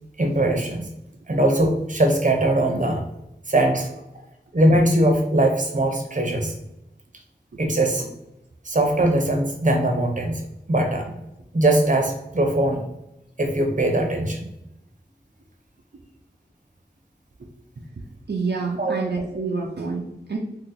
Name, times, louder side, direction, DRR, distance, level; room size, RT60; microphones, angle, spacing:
voice 1, 0.2-0.9 1.3-3.0 3.5-3.9 4.5-6.5 7.6-8.1 8.6-10.4 10.7-11.1 11.5-12.8 13.4-14.5 18.8-19.0, right 1 dB, 45° right, 3 dB, 0.8 m, -21 dB
voice 2, 18.3-20.4, right 4 dB, 70° right, -2 dB, 0.5 m, -27 dB
2.9 x 2.8 x 3.8 m, 0.87 s
wide cardioid pair, 45°, 18 cm